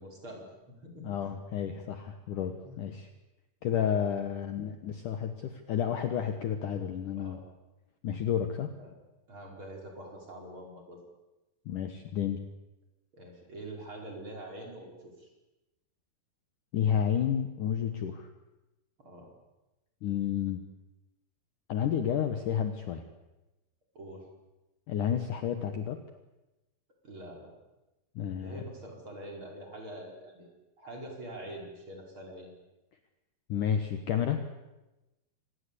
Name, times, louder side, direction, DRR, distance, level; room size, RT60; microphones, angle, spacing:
voice 1, 0.0-1.4 2.6-2.9 7.1-7.5 8.8-8.9 9.3-11.0 13.1-15.3 19.0-19.3 24.0-24.3 27.0-27.5 28.3-32.5, right 1 dB, 30° right, 1 dB, 5.3 m, -45 dB
voice 2, 1.0-3.1 3.6-7.4 8.0-8.7 11.7-12.4 16.7-18.3 20.0-20.6 21.7-23.0 24.9-26.0 28.2-28.6 33.5-34.4, left 8 dB, 65° left, 8 dB, 2.3 m, -31 dB
25.5 x 20.0 x 8.4 m, 1.0 s
omnidirectional pair, 4.9 m